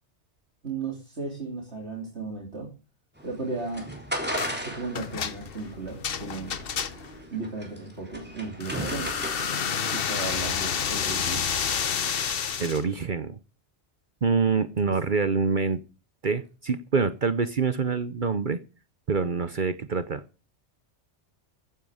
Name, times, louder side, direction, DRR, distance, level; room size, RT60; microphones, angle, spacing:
voice 1, 0.6-2.7 3.2-3.9 4.6-6.6 7.3-9.1 9.7-11.5, right 3 dB, 70° right, 0 dB, 3.5 m, -35 dB
sound 1, 3.2-9.8, equal, 10° right, 3.5 m, -36 dB
sound 2, 4.4-4.6 4.9-7.2 8.6-12.8, left 7 dB, 55° left, 1.1 m, -29 dB
voice 2, 12.6-13.4 14.2-15.8 16.2-18.6 19.1-20.2, right 5 dB, 45° right, 12 dB, 1.0 m, -26 dB
15.0 x 9.6 x 5.0 m, 0.34 s
omnidirectional pair, 1.2 m